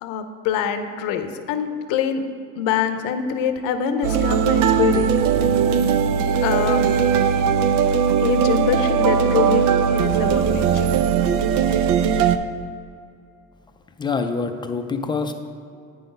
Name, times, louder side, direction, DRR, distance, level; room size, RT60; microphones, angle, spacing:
voice 1, 0.0-2.2 2.6-5.2 6.4-6.8 7.2-7.4 8.2-10.9, left 7 dB, 85° left, 8 dB, 0.7 m, -24 dB
sound 1, 4.0-12.4, right 7 dB, 90° right, 0.5 m, -19 dB
voice 2, 14.0-15.3, left 4 dB, 15° left, 6 dB, 0.4 m, -25 dB
8.9 x 4.0 x 5.2 m, 2.3 s
cardioid pair, 135°, 32 cm